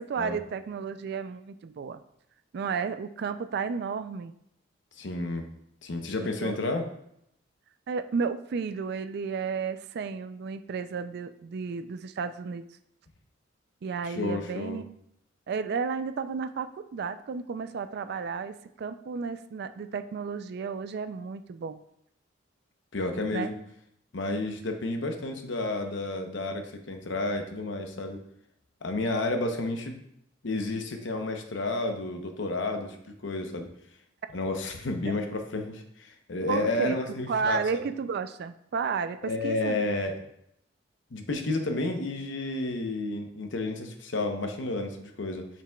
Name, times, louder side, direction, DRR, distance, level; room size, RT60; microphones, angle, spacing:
voice 1, 0.0-2.0 2.5-4.3 6.2-6.8 7.9-12.7 13.8-14.8 15.5-21.8 23.3-23.5 36.5-37.0 37.3-39.8, right 5 dB, 55° right, 11 dB, 0.3 m, -32 dB
voice 2, 5.0-5.4 5.8-6.8 14.0-14.8 22.9-23.6 24.1-28.2 28.8-30.0 30.4-33.0 33.2-33.7 34.3-37.6 39.2-40.1 41.1-45.5, left 2 dB, 65° left, 5 dB, 0.8 m, -31 dB
7.3 x 5.9 x 2.3 m, 0.75 s
head